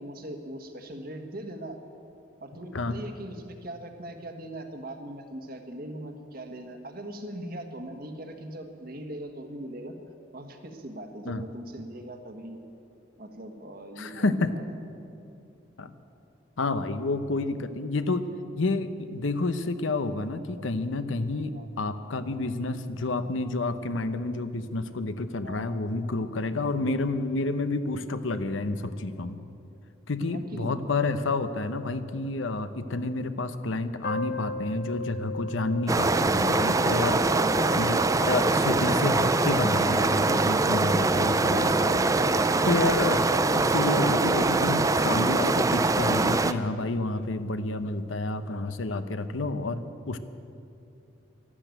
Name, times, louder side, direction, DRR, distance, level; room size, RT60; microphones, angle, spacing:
voice 1, 0.0-1.8 2.4-10.0 10.3-12.6 13.2-14.7 21.5-21.7 25.4-25.7 30.3-30.8 37.1-37.5, right 1 dB, 50° right, 6 dB, 1.4 m, -40 dB
voice 2, 14.0-14.5 15.8-15.9 16.6-18.3 18.6-29.4 30.1-37.2 37.8-42.0 42.6-50.2, left 2 dB, 85° left, 11 dB, 0.8 m, -29 dB
sound 1, 34.0-46.3, left 2 dB, 50° left, 0.9 m, -38 dB
sound 2, 35.9-46.5, right 3 dB, 15° right, 0.4 m, -23 dB
12.5 x 12.5 x 9.1 m, 2.6 s
head